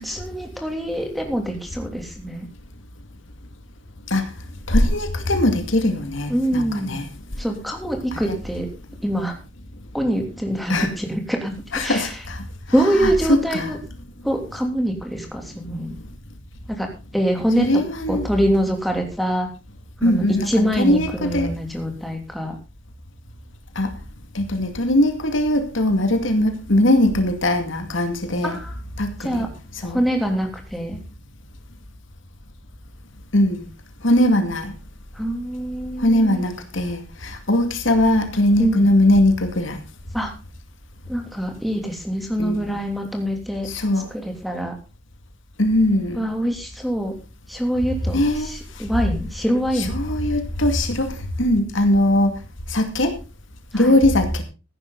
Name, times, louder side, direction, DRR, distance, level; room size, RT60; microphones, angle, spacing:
voice 1, 0.0-2.5 6.3-7.0 7.4-8.7 9.0-9.3 9.9-12.2 12.7-13.8 14.2-15.9 16.7-17.7 18.1-19.5 20.0-22.6 28.4-28.8 29.2-29.5 29.8-31.0 35.1-36.4 38.6-38.8 40.1-40.3 41.1-43.7 44.1-44.7 46.2-47.1 47.5-49.9 53.7-53.9, equal, ahead, 2 dB, 3.0 m, -24 dB
voice 2, 4.7-7.1 8.1-8.4 10.7-10.9 11.7-12.4 12.8-13.7 17.6-18.3 20.0-21.5 23.8-23.9 24.3-28.6 29.0-30.0 33.3-33.6 34.0-34.8 36.0-39.8 42.4-42.8 43.6-44.1 45.6-46.3 48.1-48.8 49.7-52.4 52.7-53.2 53.7-54.4, left 1 dB, 70° left, 7 dB, 2.3 m, -20 dB
15.5 x 11.0 x 4.0 m, 0.31 s
head